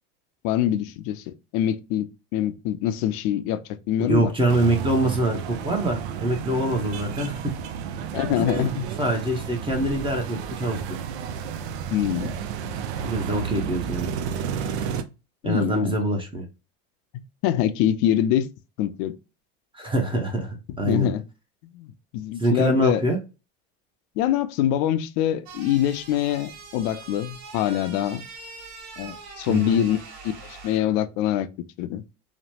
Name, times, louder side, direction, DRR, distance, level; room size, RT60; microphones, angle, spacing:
voice 1, 0.4-3.6 3.9-4.3 8.1-8.9 11.9-12.3 15.4-16.0 17.4-18.5 18.8-19.2 20.8-21.2 21.7-23.0 24.2-28.2 29.0-31.5 31.8-32.0, left 11 dB, 65° left, 0.5 m, -24 dB
voice 2, 4.0-7.4 8.5-10.8 13.0-14.1 15.4-16.5 19.7-21.1 22.4-23.2 29.5-29.8, right 1 dB, 15° right, 0.7 m, -25 dB
sound 1, 4.5-15.0, right 8 dB, 85° right, 0.5 m, -31 dB
sound 2, 25.5-30.8, right 4 dB, 60° right, 1.1 m, -42 dB
3.0 x 2.1 x 2.7 m
supercardioid pair, 110°, 32 cm